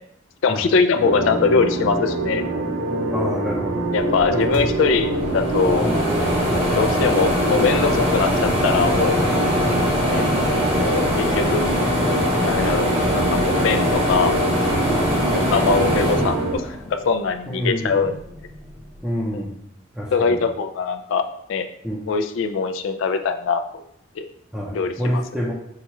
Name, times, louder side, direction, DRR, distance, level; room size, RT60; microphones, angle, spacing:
voice 1, 0.4-2.4 3.9-5.9 6.7-9.2 10.0-10.3 10.8-11.7 12.4-14.3 15.3-18.2 19.3-19.4 20.1-21.2 21.5-21.7 22.1-23.8 24.2-24.3 24.7-25.2, left 5 dB, 75° left, 8 dB, 0.3 m, -22 dB
sound 1, 0.9-16.5, right 2 dB, 75° right, 0.6 m, -26 dB
voice 2, 3.1-3.9 4.3-4.6 5.8-6.1 6.5-6.7 9.6-9.9 14.9-15.1 17.5-18.1 19.0-19.6 19.9-20.4 21.8-22.1 24.5-25.5, equal, 5° right, -6 dB, 0.5 m, -27 dB
sound 2, 4.2-4.3 4.5-17.1 17.6-18.7, left 1 dB, 30° right, 0.9 m, -22 dB
5.5 x 2.3 x 3.0 m, 0.72 s
head